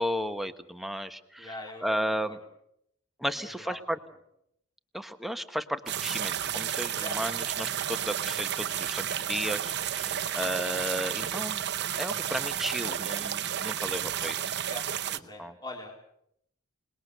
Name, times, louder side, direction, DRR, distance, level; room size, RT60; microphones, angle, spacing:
voice 1, 0.0-1.5 1.8-2.4 3.2-4.0 4.9-11.6 11.9-14.5 15.4-15.5, equal, ahead, 8 dB, 1.2 m, -34 dB
voice 2, 1.4-2.4 3.3-4.0 7.0-7.2 7.5-7.6 7.9-8.0 10.0-10.4 12.9-13.0 14.7-15.9, left 2 dB, 20° left, 1 dB, 3.7 m, -44 dB
sound 1, 5.9-15.2, right 10 dB, 50° right, 0.9 m, -32 dB
28.5 x 20.5 x 6.8 m, 0.74 s
head